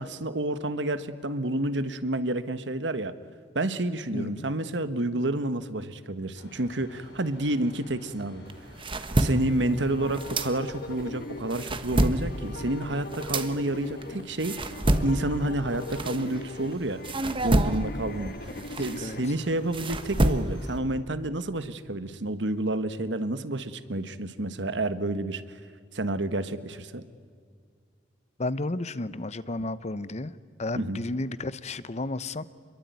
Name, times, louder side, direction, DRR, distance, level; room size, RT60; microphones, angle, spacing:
voice 1, 0.0-3.1 3.5-8.4 9.1-14.7 15.0-17.0 17.4-18.3 18.8-25.4 25.9-27.0 30.8-31.0, right 1 dB, 85° right, 1.5 m, -29 dB
voice 2, 4.1-4.5 18.6-18.7 19.0-19.2 28.4-30.3 30.6-32.4, left 2 dB, 40° left, 0.8 m, -32 dB
sound 1, 6.3-20.8, left 1 dB, 85° left, 6.3 m, -51 dB
sound 2, 8.5-11.0 11.4-16.7 17.0-20.8, right 1 dB, 30° right, 1.3 m, -28 dB
sound 3, 9.4-19.3, left 2 dB, 60° left, 1.6 m, -41 dB
27.0 x 22.5 x 9.5 m
head